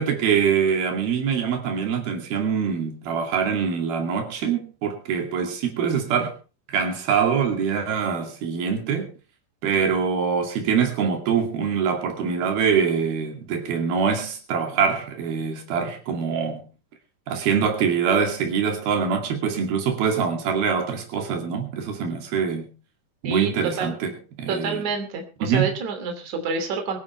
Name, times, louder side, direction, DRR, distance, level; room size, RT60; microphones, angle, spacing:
voice 1, 0.0-6.4 6.7-9.1 9.6-16.7 17.3-22.7 23.2-24.9 25.4-25.7, right 6 dB, 90° right, 4.4 m, -24 dB
voice 2, 23.2-24.0 24.5-27.0, right 5 dB, 55° right, 4.0 m, -28 dB
23.0 x 11.5 x 3.3 m
omnidirectional pair, 4.2 m